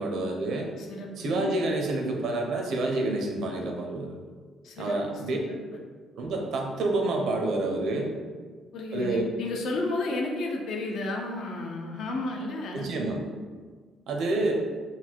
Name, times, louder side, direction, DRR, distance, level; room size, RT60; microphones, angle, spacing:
voice 1, 0.0-0.7 1.2-4.2 4.8-5.4 6.2-8.1 8.9-9.2 12.7-13.2 14.1-14.5, right 2 dB, 60° right, 2 dB, 0.6 m, -28 dB
voice 2, 0.8-1.5 4.6-5.0 5.5-5.6 8.7-12.9, left 2 dB, 55° left, 1 dB, 0.6 m, -32 dB
4.1 x 2.2 x 4.5 m, 1.5 s
cardioid pair, 160°, 0 cm